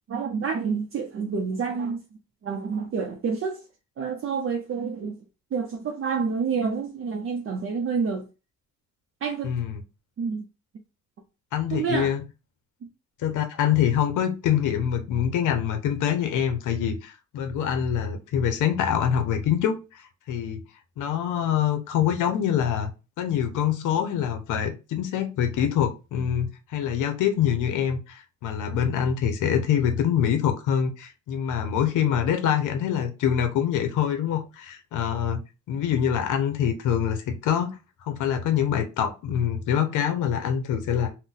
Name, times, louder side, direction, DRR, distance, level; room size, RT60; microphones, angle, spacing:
voice 1, 0.1-2.0 2.4-3.6 4.0-5.2 5.5-8.3 9.2-9.5 10.2-10.4 11.7-12.1, right 5 dB, 45° right, 0.6 m, -28 dB
voice 2, 9.4-9.8 11.5-12.2 13.2-20.0 20.3-20.6 21.0-22.9 23.2-35.4 35.7-37.8 38.1-41.1, left 9 dB, 80° left, 0.7 m, -25 dB
2.6 x 2.2 x 3.7 m
cardioid pair, 90°, 30 cm